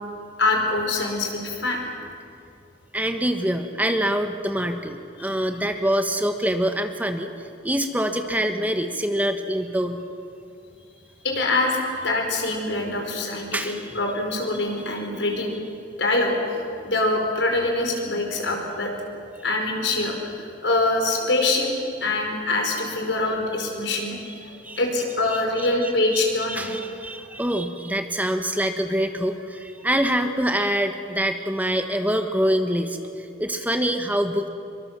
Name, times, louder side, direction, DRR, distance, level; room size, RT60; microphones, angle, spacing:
voice 1, 0.4-1.8 5.2-5.3 11.2-15.6 16.0-16.3 16.7-18.9 19.4-21.7 22.0-24.2 24.4-26.7, left 2 dB, 85° left, 2 dB, 4.9 m, -24 dB
voice 2, 2.9-7.3 7.6-10.0 13.5-13.9 24.6-24.8 25.8-26.2 26.5-33.0 33.4-34.5, equal, 10° right, 6 dB, 1.3 m, -25 dB
24.5 x 23.5 x 7.4 m, 2.5 s
head